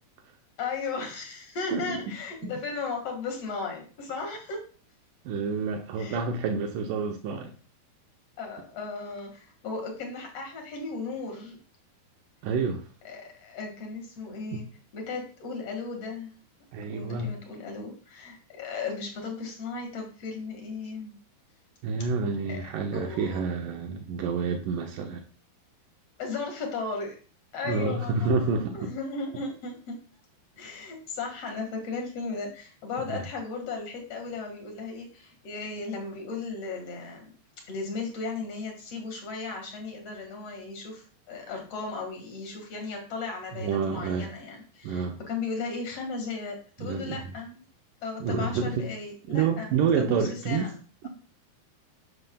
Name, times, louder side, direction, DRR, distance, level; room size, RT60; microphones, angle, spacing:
voice 1, 0.6-4.6 6.0-6.3 8.4-11.6 13.0-14.7 14.9-16.3 16.9-21.2 22.5-22.7 22.9-23.4 26.2-27.2 27.5-28.5 28.7-30.0 30.6-37.3 37.7-47.6 48.0-50.7, left 4 dB, 50° left, 2 dB, 2.3 m, -36 dB
voice 2, 5.3-7.5 12.4-12.8 14.5-14.6 16.7-17.3 21.8-25.2 27.7-28.9 33.1-33.2 43.5-44.3 44.8-45.2 46.8-47.2 48.2-48.9 49.3-50.7, right 5 dB, 85° right, 4 dB, 1.8 m, -28 dB
11.5 x 6.8 x 2.3 m, 0.39 s
omnidirectional pair, 4.7 m